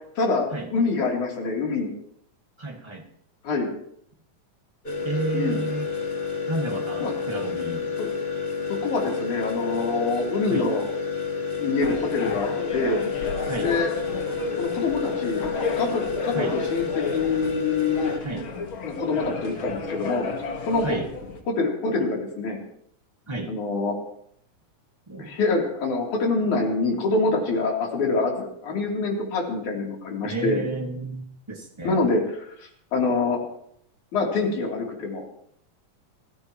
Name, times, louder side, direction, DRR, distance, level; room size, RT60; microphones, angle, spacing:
voice 1, 0.2-1.9 3.4-3.7 5.3-5.6 7.0-7.1 8.0-8.1 8.8-10.8 11.6-13.0 13.6-13.9 14.6-15.4 15.7-18.1 18.8-20.3 20.7-21.0 21.5-22.6 23.5-23.9 25.2-30.6 31.8-33.4 34.1-35.2, left 3 dB, 65° left, -1 dB, 4.6 m, -25 dB
voice 2, 2.6-3.0 5.0-5.9 6.5-7.9 10.5-10.7 13.4-13.7 16.3-16.6 18.2-18.4 20.8-21.1 23.3-23.5 25.1-25.3 30.2-32.0, right 2 dB, 15° right, 1 dB, 1.0 m, -31 dB
sound 1, 4.8-18.2, left 5 dB, 20° left, 1.8 m, -29 dB
sound 2, 11.8-21.4, left 4 dB, 45° left, 2.1 m, -33 dB
25.0 x 17.0 x 3.1 m, 0.71 s
omnidirectional pair, 3.8 m